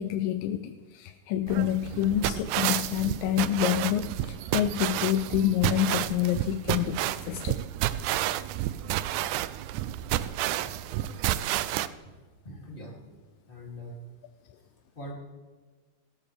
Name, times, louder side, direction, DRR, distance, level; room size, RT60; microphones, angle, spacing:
voice 1, 0.0-7.6, left 11 dB, 90° left, 10 dB, 2.2 m, -28 dB
sound 1, 1.5-11.9, right 14 dB, 80° right, 1.8 m, -30 dB
voice 2, 10.7-11.4 12.0-12.1 12.4-13.0 13.5-14.0 14.5-15.1, equal, 15° left, -2 dB, 2.5 m, -44 dB
16.0 x 13.5 x 3.4 m, 1.4 s
omnidirectional pair, 3.8 m